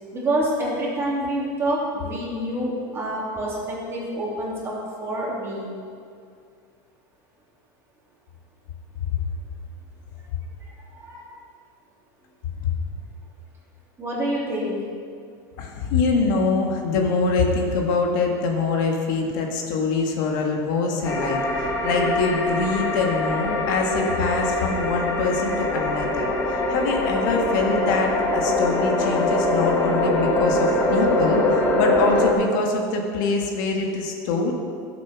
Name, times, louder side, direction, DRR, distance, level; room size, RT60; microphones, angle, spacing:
voice 1, 0.1-5.7 10.6-11.3 14.0-14.8, right 1 dB, 25° right, -5 dB, 3.1 m, -27 dB
voice 2, 15.6-34.5, left 3 dB, 70° left, 1 dB, 1.8 m, -24 dB
sound 1, 21.0-32.3, left 2 dB, 25° left, 2.0 m, -23 dB
12.5 x 7.8 x 6.0 m, 2.3 s
supercardioid pair, 145°, 11 cm